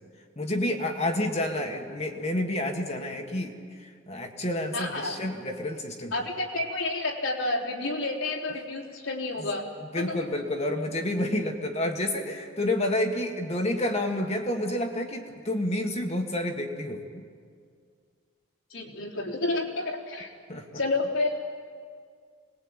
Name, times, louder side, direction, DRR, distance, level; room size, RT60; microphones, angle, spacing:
voice 1, 0.4-3.5 3.8-6.1 9.4-9.5 9.9-17.2 20.5-20.6, left 1 dB, 30° left, 2 dB, 1.8 m, -29 dB
voice 2, 4.7-5.2 6.1-9.6 9.9-10.4 18.7-20.3 20.7-21.3, left 2 dB, 80° left, -2 dB, 3.7 m, -30 dB
25.5 x 20.5 x 9.0 m, 2.1 s
head